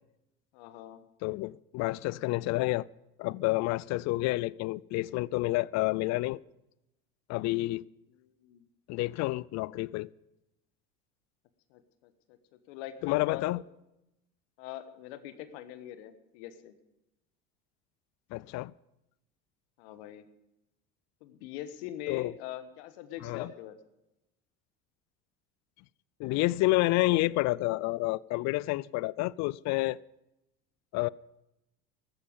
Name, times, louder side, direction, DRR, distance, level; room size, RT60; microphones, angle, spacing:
voice 1, 0.5-1.0 8.2-8.6 11.7-12.1 12.7-13.4 14.6-16.8 19.8-20.2 21.2-23.8, left 12 dB, 75° left, 1.3 m, -43 dB
voice 2, 1.2-2.9 3.2-6.4 7.3-7.8 8.9-10.1 13.0-13.6 18.3-18.7 22.1-22.3 23.2-23.5 26.2-30.0 30.9-31.1, left 20 dB, 55° left, 0.5 m, -29 dB
14.5 x 12.5 x 5.2 m
hypercardioid pair, 80°, 33 cm